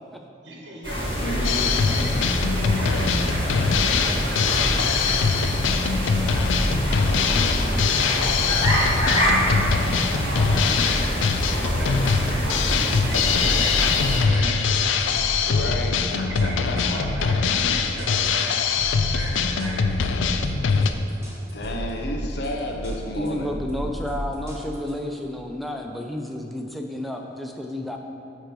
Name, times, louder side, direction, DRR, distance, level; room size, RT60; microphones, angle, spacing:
voice 1, 0.4-1.4 1.7-5.5 6.0-6.4 6.9-7.0 7.4-8.4 8.8-15.0 16.2-18.5 19.1-20.1, right 1 dB, 75° right, -3 dB, 1.2 m, -38 dB
sound 1, 0.8-14.2, equal, 30° left, 1.5 m, -25 dB
voice 2, 1.2-1.6 15.4-17.1 21.5-23.5, left 1 dB, 60° left, 2 dB, 0.7 m, -31 dB
Drum kit, 1.4-20.9, left 5 dB, 85° left, 0.4 m, -23 dB
sound 2, 12.3-25.1, equal, 15° right, 1.1 m, -33 dB
voice 3, 23.1-28.0, left 1 dB, ahead, 2 dB, 0.4 m, -31 dB
8.7 x 3.1 x 5.2 m, 2.7 s
head